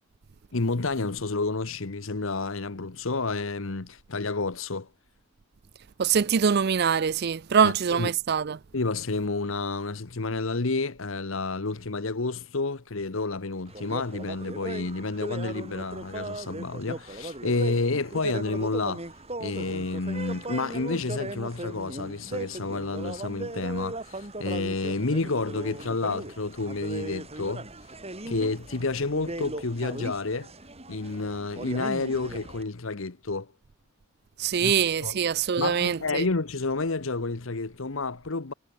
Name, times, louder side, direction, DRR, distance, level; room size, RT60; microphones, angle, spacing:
voice 1, 0.5-4.9 7.6-8.1 8.7-19.0 19.4-27.7 28.2-30.5 30.9-33.5 34.6-34.7 35.0-35.2 35.6-38.5, left 3 dB, 65° left, 1.1 m, -30 dB
voice 2, 6.0-8.6 34.4-36.3, right 7 dB, 50° right, 0.5 m, -24 dB
sound 1, 13.7-32.6, right 1 dB, 30° right, 6.0 m, -38 dB
head